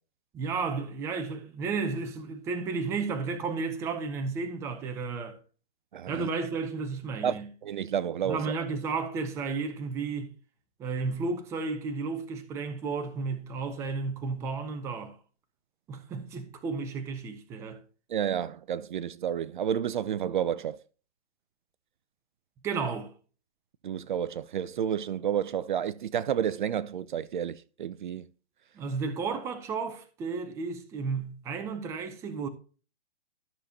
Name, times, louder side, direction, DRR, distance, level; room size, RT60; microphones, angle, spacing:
voice 1, 0.3-5.4 6.1-7.5 8.2-10.3 10.8-15.2 15.9-17.8 22.6-23.1 28.7-32.5, right 4 dB, 10° right, 0.6 m, -33 dB
voice 2, 5.9-6.3 7.2-8.4 18.1-20.8 23.8-28.2, right 9 dB, 45° right, 0.6 m, -30 dB
12.5 x 6.6 x 2.8 m
hypercardioid pair, 150°, 33 cm